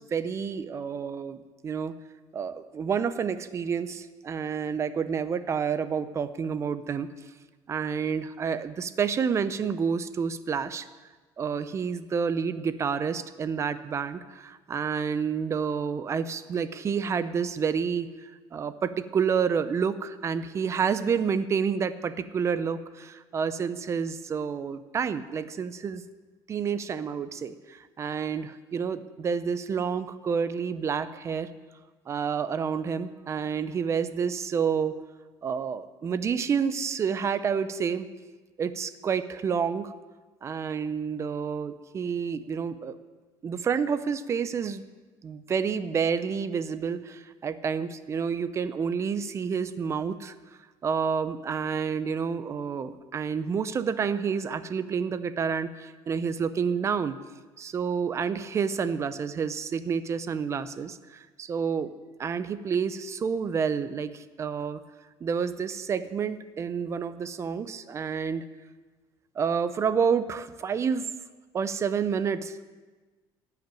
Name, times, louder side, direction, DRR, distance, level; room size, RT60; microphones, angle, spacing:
voice 1, 0.0-2.0 2.3-7.1 7.7-10.9 11.4-26.0 26.5-31.5 32.1-34.9 35.4-38.1 38.6-39.9 40.4-42.9 43.4-44.8 45.2-50.3 50.8-57.2 57.6-61.9 62.2-64.8 65.2-68.4 69.4-71.1 71.5-72.6, right 6 dB, 30° right, 13 dB, 0.6 m, -29 dB
15.5 x 5.9 x 9.1 m, 1.3 s
cardioid pair, 145°, 10 cm